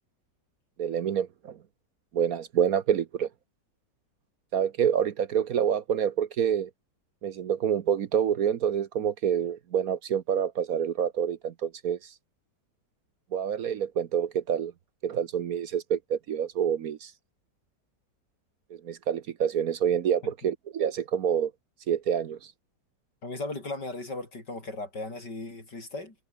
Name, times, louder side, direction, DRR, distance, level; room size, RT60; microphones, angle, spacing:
voice 1, 0.8-1.6 2.1-3.3 4.5-6.7 7.2-12.0 13.3-14.7 15.0-17.1 18.8-21.5 21.9-22.4, right 8 dB, 60° right, 1.2 m, -27 dB
voice 2, 23.2-26.2, left 2 dB, 75° left, 7.1 m, -37 dB
omnidirectional pair, 1.9 m